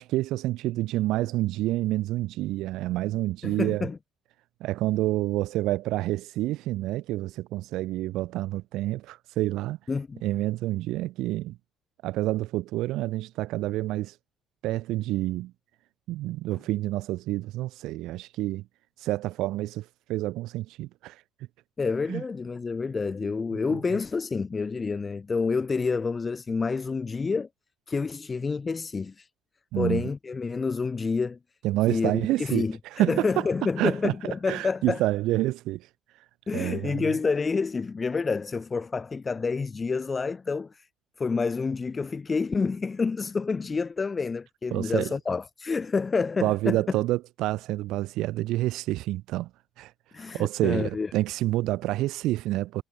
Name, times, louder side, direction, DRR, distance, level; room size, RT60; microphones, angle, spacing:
voice 1, 0.0-3.9 4.6-9.8 10.2-11.6 12.0-14.2 14.6-15.5 16.1-18.6 19.0-21.2 22.1-22.2 23.6-23.8 29.7-30.0 31.6-33.5 33.8-34.1 34.5-35.9 36.5-37.0 44.7-45.1 46.4-49.5 49.8-49.9 50.2-52.8, right 16 dB, 60° right, 3.4 m, -28 dB
voice 2, 3.4-4.0 9.9-10.2 21.8-27.5 27.9-29.3 29.8-31.4 31.9-35.0 36.5-40.9 41.2-46.8 50.1-51.1, left 4 dB, 30° left, 1.4 m, -28 dB
figure-of-eight pair, 50°, 0 cm